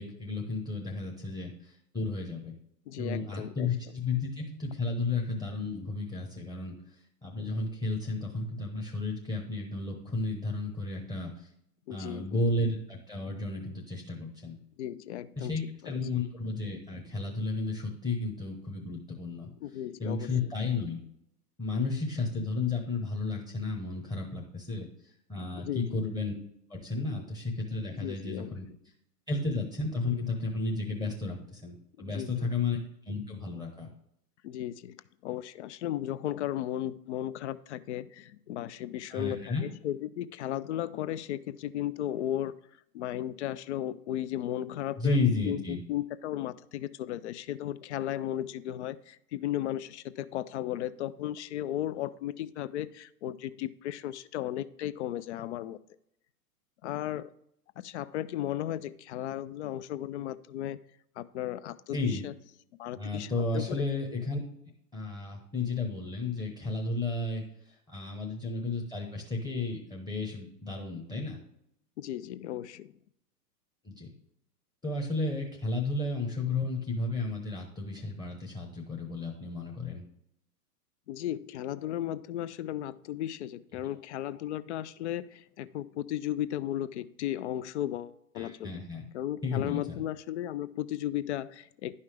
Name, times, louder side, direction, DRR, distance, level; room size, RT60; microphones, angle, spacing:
voice 1, 0.0-2.5 3.0-6.7 7.2-11.5 11.9-14.6 15.4-19.5 20.0-21.0 21.6-24.9 25.3-26.3 26.7-28.7 29.3-32.8 33.0-33.9 39.1-39.6 45.0-45.8 61.9-62.2 63.0-64.4 64.9-71.4 73.8-74.1 74.8-80.0 88.4-89.0 89.4-90.0, left 3 dB, 10° left, -1 dB, 0.9 m, -33 dB
voice 2, 2.9-3.7 11.9-12.4 14.8-15.5 15.8-15.9 19.6-20.3 25.7-26.0 28.0-28.5 32.0-32.5 34.4-42.6 42.9-45.2 45.4-55.8 56.8-57.3 57.8-60.8 61.2-62.3 62.8-63.8 72.0-72.9 81.1-88.7 89.1-91.9, left 12 dB, 45° left, 16 dB, 0.5 m, -35 dB
10.5 x 5.6 x 3.3 m, 0.76 s
hypercardioid pair, 115°, 48 cm